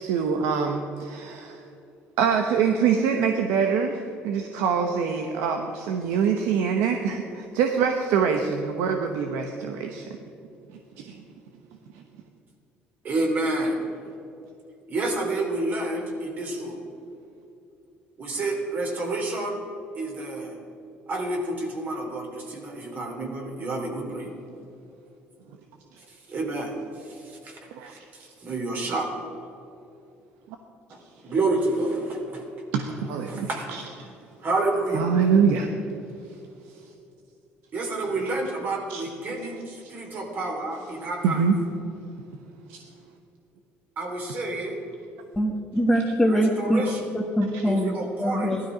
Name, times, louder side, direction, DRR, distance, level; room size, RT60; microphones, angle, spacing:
voice 1, 0.0-1.6 2.2-10.2 11.1-11.2 11.9-12.0 27.7-28.0 32.7-33.8 34.9-35.7 38.9-39.0 41.2-41.6 42.7-42.8 47.5-47.6, right 6 dB, 90° right, 4 dB, 0.9 m, -24 dB
voice 2, 13.0-13.8 14.9-16.8 18.2-19.6 19.9-20.6 21.1-24.3 26.3-27.6 27.9-29.1 30.9-32.5 33.3-33.9 34.4-35.1 37.7-41.4 44.0-44.8 46.3-47.1 47.7-48.5, right 2 dB, 45° right, 1 dB, 3.2 m, -29 dB
voice 3, 45.4-46.8 47.1-47.9 48.2-48.6, equal, 5° left, -1 dB, 1.2 m, -23 dB
16.0 x 12.5 x 5.1 m, 2.7 s
cardioid pair, 110°, 4 cm